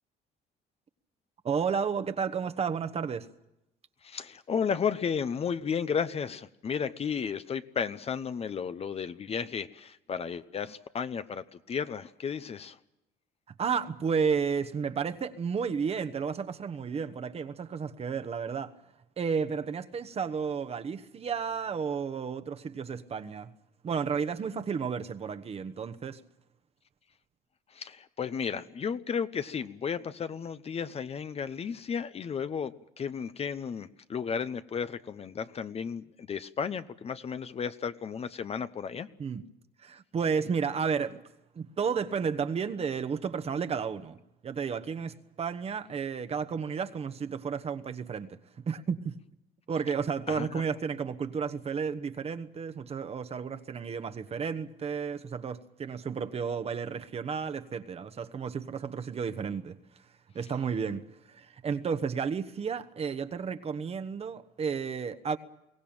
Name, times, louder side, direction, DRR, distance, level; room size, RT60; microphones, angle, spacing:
voice 1, 1.4-3.3 13.6-18.7 19.2-23.5 23.8-26.2 39.2-39.4 39.8-41.2 41.5-44.2 44.4-48.4 48.6-49.1 49.7-59.8 60.3-65.4, right 6 dB, 35° right, 1.1 m, -32 dB
voice 2, 4.0-12.8 27.7-39.1 50.3-50.6, left 6 dB, 35° left, 0.9 m, -33 dB
22.5 x 17.5 x 8.8 m
cardioid pair, 110°, 17 cm